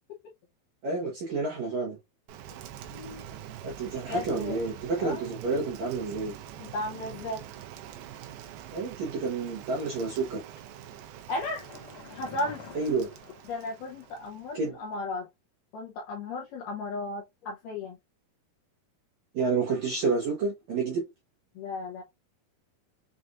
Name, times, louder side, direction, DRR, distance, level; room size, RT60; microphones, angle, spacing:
voice 1, 0.8-2.0 3.6-6.4 8.7-10.4 12.7-13.1 14.5-14.8 19.3-21.0, right 4 dB, 65° right, 1.9 m, -29 dB
Rain, 2.3-14.7, right 10 dB, 80° right, 2.4 m, -45 dB
voice 2, 2.9-3.2 4.1-4.6 5.0-5.3 6.6-7.4 11.3-11.7 12.1-12.6 13.5-15.3 15.7-18.0 21.6-22.0, left 2 dB, 75° left, 1.9 m, -35 dB
sound 1, 10.6-14.3 14.5-14.6, left 4 dB, 45° left, 1.8 m, -49 dB
6.7 x 2.5 x 2.5 m
omnidirectional pair, 4.6 m